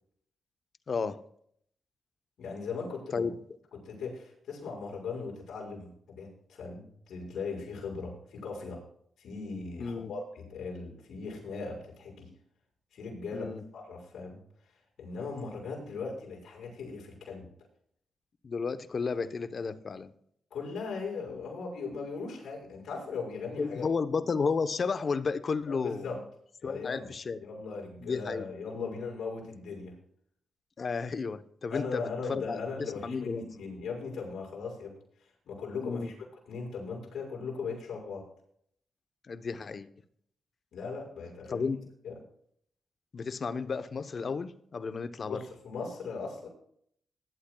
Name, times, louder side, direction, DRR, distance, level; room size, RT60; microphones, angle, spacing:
voice 1, 0.9-1.2 3.1-3.4 9.8-10.1 13.3-13.6 18.4-20.1 23.6-26.1 26.6-27.4 28.0-28.5 28.8-29.0 30.8-33.4 35.8-36.1 39.3-39.9 41.5-41.8 43.1-45.4, left 5 dB, 50° left, 11 dB, 0.9 m, -33 dB
voice 2, 2.4-3.3 3.7-8.8 9.2-12.3 12.9-14.4 15.0-17.5 20.5-23.8 25.7-26.2 26.6-27.1 27.4-30.0 31.7-34.9 35.2-38.3 40.7-41.7 42.0-42.1 45.3-46.5, left 4 dB, 80° left, -3 dB, 5.8 m, -39 dB
19.5 x 12.0 x 2.3 m, 0.66 s
cardioid pair, 70°, 0 cm